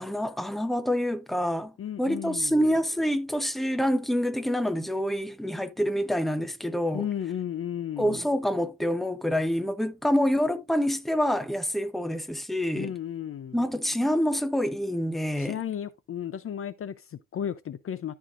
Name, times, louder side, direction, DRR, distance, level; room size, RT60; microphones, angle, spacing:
voice 1, 0.0-1.7 2.0-7.1 8.0-12.9 13.5-15.6, equal, ahead, 0.9 m, -27 dB
voice 2, 1.8-2.7 6.9-8.2 12.8-13.6 15.4-18.1, left 9 dB, 45° left, 0.6 m, -34 dB
14.0 x 4.7 x 2.5 m
cardioid pair, 90°, 30 cm